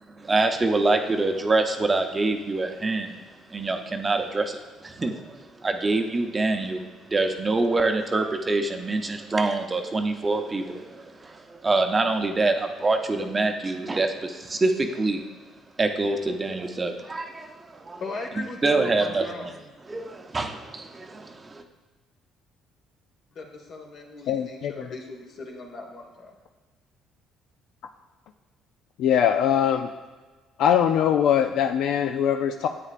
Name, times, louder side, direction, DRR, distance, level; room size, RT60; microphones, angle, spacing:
voice 1, 0.1-3.2 3.5-15.2 15.8-18.0 18.6-19.5 19.8-21.6, right 3 dB, 25° right, 5 dB, 0.6 m, -25 dB
voice 2, 18.0-19.6 23.3-26.3, left 3 dB, 55° left, 1 dB, 1.5 m, -38 dB
voice 3, 24.3-24.9 29.0-29.9 30.6-32.7, left 9 dB, 70° left, 6 dB, 0.3 m, -22 dB
9.7 x 8.4 x 2.5 m, 1.3 s
cardioid pair, 100°, 0 cm